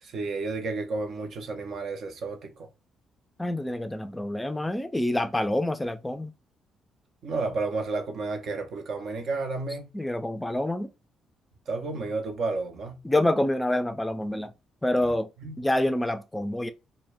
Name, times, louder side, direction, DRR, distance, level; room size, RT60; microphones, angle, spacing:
voice 1, 0.0-2.7 7.2-9.9 11.7-13.0 15.4-15.6, right 3 dB, 65° right, 0.5 m, -31 dB
voice 2, 3.4-6.3 9.9-10.9 13.0-14.5 14.8-15.3 15.6-16.7, left 1 dB, 15° left, 0.4 m, -27 dB
2.1 x 2.1 x 3.2 m
hypercardioid pair, 50°, 0 cm